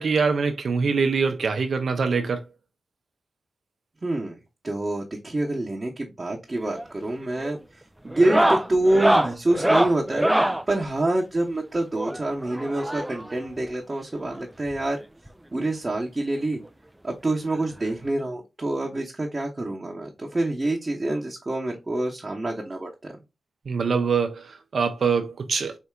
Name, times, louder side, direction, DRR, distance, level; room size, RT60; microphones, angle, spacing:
voice 1, 0.0-2.4 23.7-25.8, right 5 dB, 70° right, 0.6 m, -24 dB
voice 2, 4.0-4.4 4.6-10.3 10.7-15.0 15.5-16.6 17.0-23.1, right 2 dB, 35° right, 0.9 m, -26 dB
sound 1, 6.6-6.9 7.2-7.6 8.1-10.6 12.0-13.3 14.4-14.5 14.7-14.8 15.3-15.4 16.7-16.8 18.1-18.2, right 1 dB, 10° right, 0.4 m, -23 dB
4.4 x 2.7 x 2.3 m
supercardioid pair, 40°, 0 cm